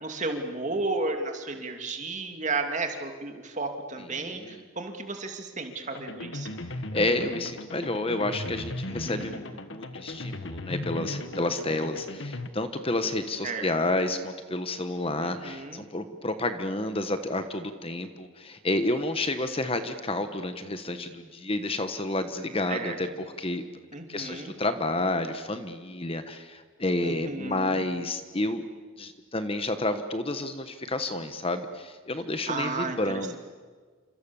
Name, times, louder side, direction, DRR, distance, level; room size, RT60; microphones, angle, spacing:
voice 1, 0.0-6.5 8.9-9.4 13.4-13.7 15.2-15.8 22.7-23.0 23.9-24.5 27.0-27.8 32.5-33.2, right 3 dB, 35° right, 5 dB, 2.7 m, -33 dB
voice 2, 4.0-4.6 6.7-23.1 23.4-23.6 24.1-28.6 29.0-33.4, left 2 dB, 25° left, 9 dB, 1.3 m, -30 dB
sound 1, 5.9-12.5, left 1 dB, 60° left, 1.6 m, -37 dB
29.0 x 27.0 x 7.2 m, 1.5 s
head